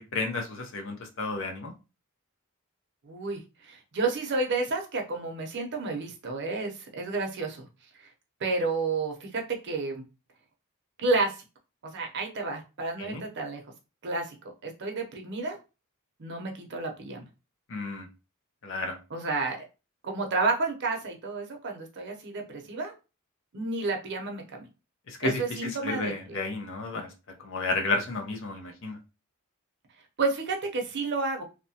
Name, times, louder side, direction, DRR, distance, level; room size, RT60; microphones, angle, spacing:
voice 1, 0.1-1.7 13.0-13.2 17.7-18.1 18.6-19.0 25.1-27.1 27.4-29.0, left 3 dB, 60° left, 3 dB, 0.6 m, -32 dB
voice 2, 3.0-7.7 8.0-8.1 8.4-10.0 11.0-11.4 11.9-13.6 14.0-14.4 14.6-15.6 16.2-17.3 19.1-19.6 20.0-22.9 23.5-24.7 25.2-26.4 30.2-31.4, right 3 dB, 55° right, 2 dB, 0.6 m, -31 dB
2.8 x 2.1 x 2.7 m, 0.29 s
head